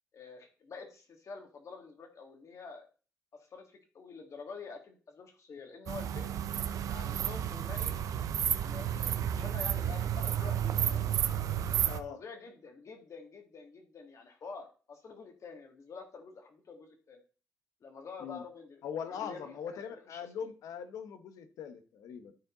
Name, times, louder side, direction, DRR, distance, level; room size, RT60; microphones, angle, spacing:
voice 1, 0.1-2.8 3.5-6.3 6.9-7.9 8.6-11.2 12.1-17.2 17.8-19.8 20.1-20.2, left 4 dB, 60° left, 4 dB, 2.3 m, -47 dB
sound 1, 5.9-12.0, right 10 dB, 75° right, 0.6 m, -31 dB
voice 2, 11.8-12.2 18.2-18.4 18.8-22.3, left 7 dB, 85° left, 10 dB, 1.0 m, -41 dB
12.0 x 4.6 x 3.9 m, 0.37 s
supercardioid pair, 60°, 6 cm